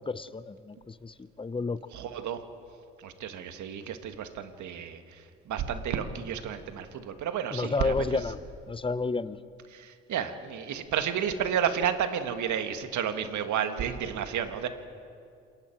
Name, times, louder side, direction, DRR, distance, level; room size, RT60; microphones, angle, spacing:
voice 1, 0.0-1.8 7.5-8.4 8.7-9.4, left 3 dB, 15° left, 15 dB, 0.9 m, -31 dB
voice 2, 1.9-2.4 3.0-8.2 9.7-14.7, right 8 dB, 60° right, 8 dB, 1.8 m, -31 dB
27.5 x 21.5 x 4.6 m, 2.4 s
hypercardioid pair, 55°, 33 cm